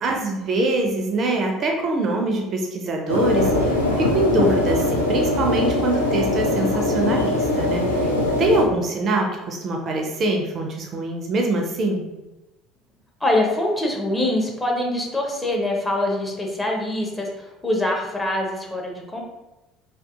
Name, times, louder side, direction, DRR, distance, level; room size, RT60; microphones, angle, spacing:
voice 1, 0.0-12.0, right 2 dB, 40° right, 2 dB, 0.4 m, -24 dB
sound 1, 3.1-8.6, left 1 dB, 85° left, 0.3 m, -21 dB
voice 2, 13.2-19.2, left 1 dB, 15° left, -1 dB, 0.6 m, -24 dB
2.7 x 2.3 x 2.3 m, 1.0 s
figure-of-eight pair, 60°, 0 cm